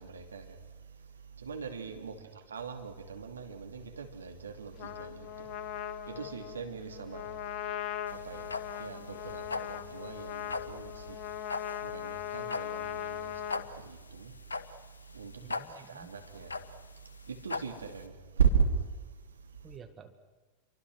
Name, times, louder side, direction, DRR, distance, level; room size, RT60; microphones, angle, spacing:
voice 1, 0.0-19.8, right 6 dB, 70° right, 2.8 m, -37 dB
Trumpet, 4.8-13.7, left 11 dB, 40° left, 1.8 m, -39 dB
sound 1, 8.1-18.0, left 3 dB, 75° left, 1.3 m, -40 dB
voice 2, 15.4-16.1 19.6-20.1, right 7 dB, 20° right, 2.1 m, -51 dB
29.0 x 24.0 x 6.4 m
figure-of-eight pair, 90°, 0 cm